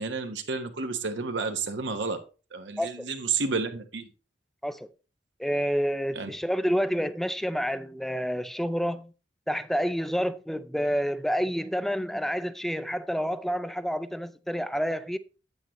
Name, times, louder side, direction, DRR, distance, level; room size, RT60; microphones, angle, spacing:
voice 1, 0.0-2.2 2.5-4.1 6.1-6.3, right 4 dB, 90° right, 1.2 m, -31 dB
voice 2, 5.4-9.1 9.5-15.2, equal, ahead, 0.4 m, -29 dB
8.5 x 8.4 x 3.1 m
head